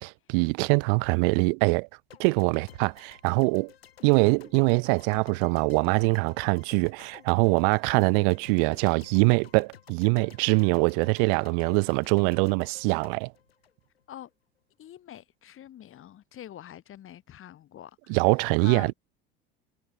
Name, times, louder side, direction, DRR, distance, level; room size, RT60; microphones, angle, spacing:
voice 1, 0.0-1.9 2.2-3.7 4.0-13.3 18.1-18.9, right 40 dB or more, 65° right, 2.0 m, -23 dB
sound 1, 2.1-14.3, left 9 dB, 85° left, 5.3 m, -53 dB
voice 2, 14.8-18.2 18.6-18.9, left 11 dB, 45° left, 6.1 m, -45 dB
hypercardioid pair, 70°, 30 cm